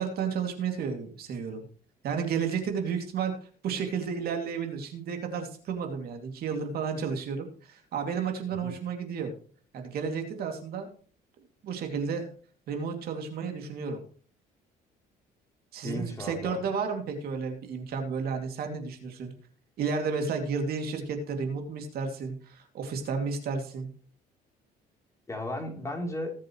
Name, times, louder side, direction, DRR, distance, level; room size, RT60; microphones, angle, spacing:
voice 1, 0.0-1.7 2.0-9.3 9.7-10.9 11.6-12.3 12.7-14.0 15.7-19.3 19.8-23.9, right 5 dB, 65° right, 4 dB, 2.6 m, -32 dB
voice 2, 15.8-16.6 25.3-26.3, left 1 dB, 15° left, 1 dB, 3.3 m, -35 dB
19.0 x 7.4 x 3.1 m, 0.43 s
cardioid pair, 110°, 17 cm